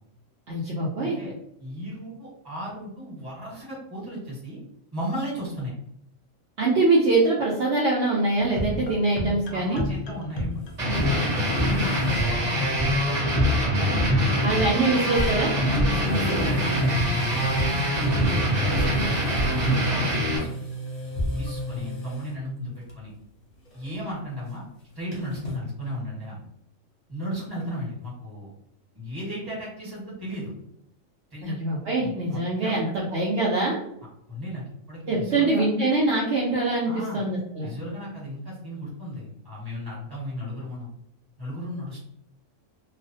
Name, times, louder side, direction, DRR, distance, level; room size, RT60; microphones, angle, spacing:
voice 1, 0.5-1.2 6.6-9.8 14.4-15.5 31.4-33.8 35.1-37.7, right 2 dB, 65° right, -5 dB, 0.8 m, -23 dB
voice 2, 1.0-1.3 1.6-4.6 4.9-5.7 9.5-10.5 10.8-10.9 11.6-13.1 13.6-14.9 15.8-20.5 21.3-23.1 23.7-24.6 24.9-26.4 27.1-28.5 28.9-30.5 31.3-31.6 32.0-33.1 34.3-35.6 36.8-37.2 37.6-40.9 41.4-42.0, equal, 20° right, -6 dB, 1.1 m, -35 dB
sound 1, 8.4-20.3 21.2-21.8, left 1 dB, 70° left, 0.3 m, -30 dB
sound 2, 10.6-12.4 12.7-12.8 14.5-14.7 15.0-22.4 22.8-23.2 23.5-25.6, right 2 dB, 40° left, 0.6 m, -36 dB
sound 3, 10.8-20.4, equal, 35° right, 0.9 m, -24 dB
2.3 x 2.1 x 2.6 m, 0.74 s
omnidirectional pair, 1.3 m